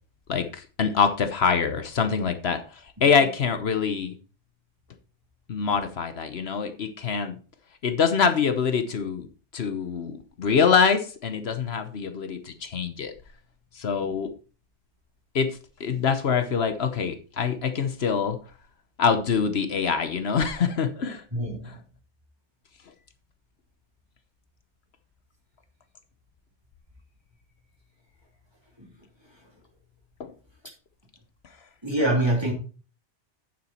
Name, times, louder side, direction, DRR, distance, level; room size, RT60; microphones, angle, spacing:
voice 1, 0.3-4.2 5.5-7.3 7.8-9.3 9.5-13.1 13.7-14.3 15.3-18.4 19.0-21.2 30.2-30.3, left 6 dB, 65° left, 9 dB, 1.2 m, -25 dB
voice 2, 21.3-21.8 28.8-28.9 31.8-32.5, right 1 dB, 20° right, -2 dB, 3.5 m, -25 dB
8.9 x 7.5 x 4.2 m, 0.36 s
omnidirectional pair, 1.2 m